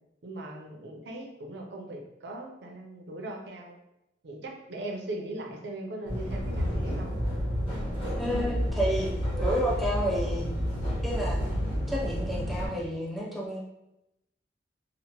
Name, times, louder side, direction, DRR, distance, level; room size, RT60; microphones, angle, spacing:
voice 1, 0.2-3.8 4.2-7.1, right 1 dB, 70° right, 1 dB, 0.5 m, -39 dB
sound 1, 6.0-12.7, equal, 30° left, 0.8 m, -30 dB
voice 2, 8.2-9.1 9.4-10.5 11.0-11.4 11.9-13.6, equal, ahead, -5 dB, 0.5 m, -30 dB
2.8 x 2.0 x 2.8 m, 0.90 s
head